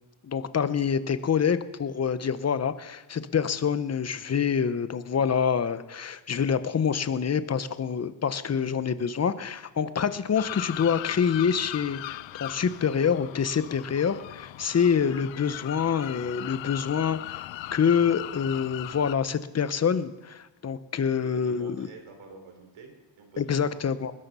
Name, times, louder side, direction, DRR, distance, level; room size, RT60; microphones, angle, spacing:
voice 1, 0.2-17.4 17.7-21.9 23.4-24.1, left 7 dB, 30° left, 13 dB, 0.9 m, -26 dB
sound 1, 10.3-19.1, left 16 dB, 65° left, 0.6 m, -39 dB
voice 2, 21.1-23.8, right 4 dB, 70° right, 4 dB, 4.5 m, -47 dB
20.0 x 12.0 x 5.6 m, 1.1 s
cardioid pair, 115°, 49 cm